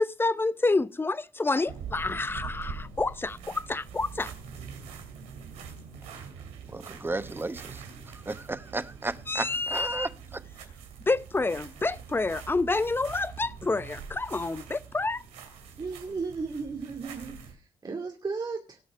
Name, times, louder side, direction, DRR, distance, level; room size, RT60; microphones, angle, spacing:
voice 1, 0.0-4.3 9.3-10.1 11.1-15.2, left 3 dB, 20° left, 0.8 m, -28 dB
sound 1, 1.7-17.5, right 6 dB, 85° right, 2.5 m, -44 dB
voice 2, 6.7-10.4, right 2 dB, 20° right, 1.0 m, -34 dB
voice 3, 15.8-18.8, right 4 dB, 40° right, 2.5 m, -35 dB
18.5 x 6.3 x 5.6 m
supercardioid pair, 55°, 11 cm